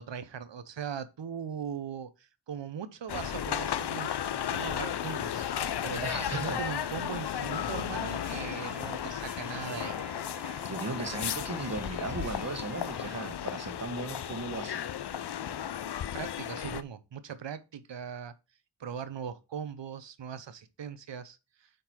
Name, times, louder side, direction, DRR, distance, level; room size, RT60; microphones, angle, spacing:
voice 1, 0.0-4.1 4.5-10.0 16.1-18.3 18.8-21.7, right 7 dB, 75° right, 0.9 m, -40 dB
sound 1, 3.1-16.8, left 9 dB, 65° left, 0.6 m, -34 dB
voice 2, 6.0-6.6 10.6-14.9, right 3 dB, 35° right, 1.3 m, -37 dB
sound 2, 8.0-13.4, right 1 dB, 5° right, 1.3 m, -49 dB
8.6 x 4.0 x 4.5 m
wide cardioid pair, 85°, 44 cm